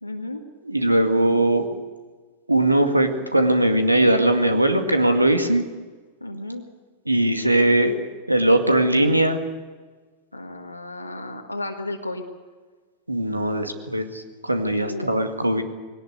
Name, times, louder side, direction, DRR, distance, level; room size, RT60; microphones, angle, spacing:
voice 1, 0.0-0.4 6.2-6.6 10.3-12.2 14.8-15.1, left 2 dB, 85° left, 1 dB, 1.7 m, -33 dB
voice 2, 0.6-1.6 2.5-5.6 7.1-7.9 8.3-9.4 13.1-15.6, right 1 dB, 85° right, 7 dB, 2.1 m, -20 dB
21.0 x 18.5 x 7.9 m, 1.4 s
figure-of-eight pair, 90°, 0 cm